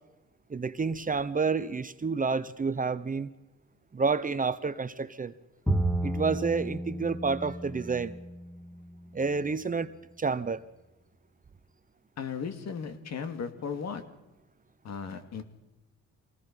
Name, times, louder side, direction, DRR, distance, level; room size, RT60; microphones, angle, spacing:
voice 1, 0.5-3.3 3.9-5.3 6.0-8.2 9.1-9.9 10.2-10.6, right 4 dB, 25° right, 14 dB, 1.0 m, -29 dB
Bowed string instrument, 5.7-9.1, right 1 dB, 5° left, 1.9 m, -32 dB
voice 2, 12.2-14.0 14.8-15.4, left 6 dB, 60° left, 7 dB, 2.6 m, -36 dB
25.5 x 18.5 x 5.6 m, 1.0 s
cardioid pair, 90°, 30 cm